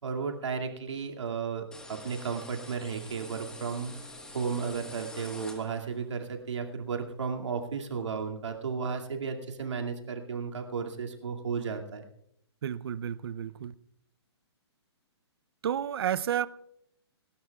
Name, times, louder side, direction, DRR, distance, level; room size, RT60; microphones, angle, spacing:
voice 1, 0.0-12.0, right 5 dB, 85° right, 2.4 m, -34 dB
sound 1, 1.7-6.0, left 1 dB, 5° left, 1.4 m, -46 dB
voice 2, 12.6-13.7 15.6-16.5, right 9 dB, 60° right, 0.6 m, -31 dB
28.5 x 13.0 x 2.4 m
hypercardioid pair, 155°, 15 cm